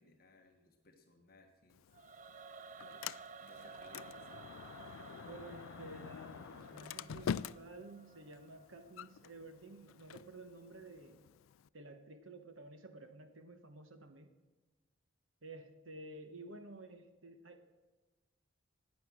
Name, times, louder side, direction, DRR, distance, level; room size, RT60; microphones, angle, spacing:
voice 1, 0.0-1.8 2.7-4.4 7.1-7.4, left 2 dB, 45° left, 2 dB, 1.4 m, -63 dB
Sliding door, 1.7-11.7, left 8 dB, 80° left, 0.3 m, -47 dB
Singing / Musical instrument, 1.9-9.0, right 5 dB, 35° right, 0.5 m, -54 dB
voice 2, 5.2-11.2 11.7-14.3 15.4-17.7, right 2 dB, 75° right, 7 dB, 1.2 m, -52 dB
17.0 x 9.5 x 6.2 m, 1.2 s
head